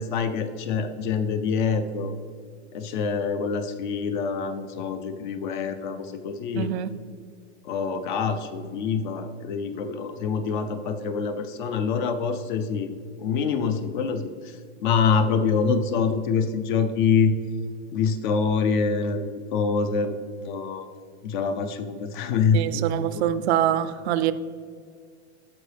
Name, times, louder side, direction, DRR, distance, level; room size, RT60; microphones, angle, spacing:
voice 1, 0.0-2.1 2.7-6.7 7.7-12.9 13.2-14.3 14.8-17.3 17.9-20.1 20.4-20.9 21.2-22.8 23.1-23.2, left 5 dB, 45° left, 9 dB, 0.6 m, -25 dB
voice 2, 6.5-6.9 22.5-24.3, right 11 dB, 70° right, 14 dB, 0.5 m, -24 dB
13.0 x 4.8 x 3.3 m, 2.1 s
supercardioid pair, 180°, 34 cm